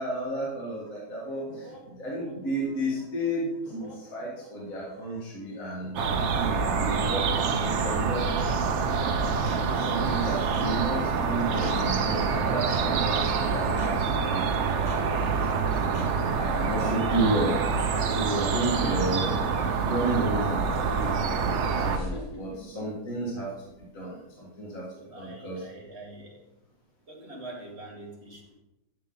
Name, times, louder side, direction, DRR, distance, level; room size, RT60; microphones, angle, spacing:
voice 1, 0.0-5.9 6.3-8.3 9.0-17.6 18.1-21.6 21.8-23.5 23.9-24.9 25.2-25.6, right 1 dB, 55° left, -5 dB, 2.3 m, -32 dB
sound 1, 0.8-16.7, left 1 dB, 25° left, 1.6 m, -50 dB
sound 2, 6.0-22.0, right 5 dB, 55° right, 0.9 m, -26 dB
sound 3, 18.7-19.0 19.4-20.0 21.0-21.1 21.9-23.3 23.6-24.0, left 2 dB, 70° left, 2.3 m, -40 dB
voice 2, 24.9-26.5 27.1-28.5, right 2 dB, 40° right, -1 dB, 2.1 m, -45 dB
12.0 x 6.8 x 3.9 m, 0.92 s
omnidirectional pair, 1.7 m